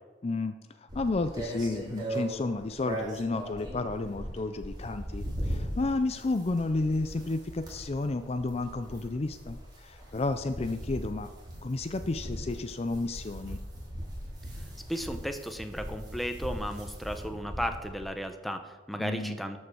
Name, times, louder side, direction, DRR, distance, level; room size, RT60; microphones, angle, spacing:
voice 1, 0.2-11.3 11.6-13.6 19.0-19.4, left 2 dB, 35° left, 9 dB, 0.5 m, -32 dB
sound 1, 0.9-18.1, right 1 dB, 25° right, 3.5 m, -39 dB
voice 2, 14.9-19.6, equal, ahead, 7 dB, 0.8 m, -35 dB
13.0 x 5.3 x 6.2 m, 1.2 s
head